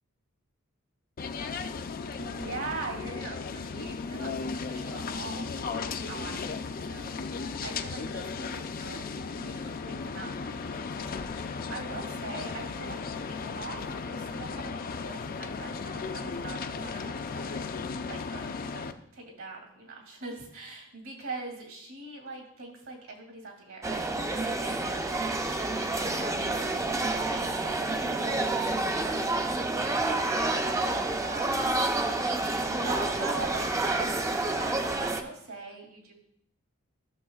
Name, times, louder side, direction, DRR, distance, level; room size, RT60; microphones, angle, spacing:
sound 1, 1.2-18.9, left 4 dB, 40° left, 0.4 m, -36 dB
voice 1, 2.1-9.7 10.0-25.5 26.1-36.1, right 3 dB, 70° right, 1 dB, 2.4 m, -42 dB
sound 2, 23.8-35.2, right 2 dB, 15° right, 0.5 m, -29 dB
13.5 x 6.4 x 2.4 m, 0.71 s
head